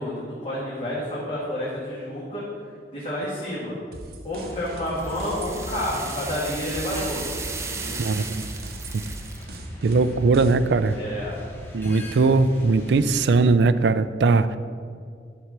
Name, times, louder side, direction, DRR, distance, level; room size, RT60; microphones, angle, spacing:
voice 1, 0.0-2.4 2.9-3.7 4.2-7.2 7.6-8.0 10.9-11.3, left 1 dB, 35° left, -7 dB, 1.6 m, -30 dB
sound 1, 3.9-10.8, right 1 dB, 55° right, 0.8 m, -40 dB
sound 2, 4.3-13.3, equal, 10° left, 1.1 m, -41 dB
sound 3, 4.4-9.6, right 4 dB, 15° right, 0.5 m, -36 dB
voice 2, 8.0-8.4 9.8-11.0 11.7-14.6, right 3 dB, 75° right, 13 dB, 0.4 m, -20 dB
11.0 x 4.3 x 6.0 m, 2.2 s
head